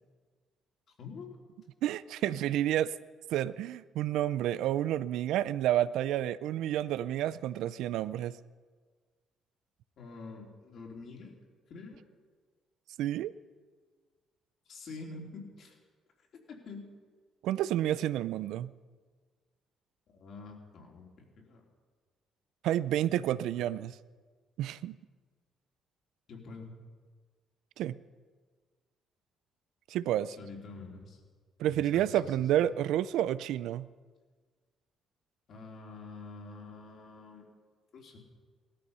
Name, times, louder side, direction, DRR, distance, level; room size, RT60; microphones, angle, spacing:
voice 1, 1.0-1.4 10.0-11.3 11.7-12.0 14.7-15.8 16.5-16.8 20.1-21.6 23.3-23.7 26.3-26.7 30.4-31.2 31.7-32.6 35.5-37.5 37.9-38.2, left 3 dB, 55° left, 0 dB, 3.3 m, -46 dB
voice 2, 1.8-2.9 3.3-8.4 13.0-13.3 17.4-18.7 22.6-23.9 24.6-25.0 27.8-28.0 29.9-30.4 31.6-33.9, right 12 dB, 85° right, 17 dB, 0.4 m, -30 dB
18.0 x 13.0 x 5.6 m, 1.5 s
cardioid pair, 120°, 0 cm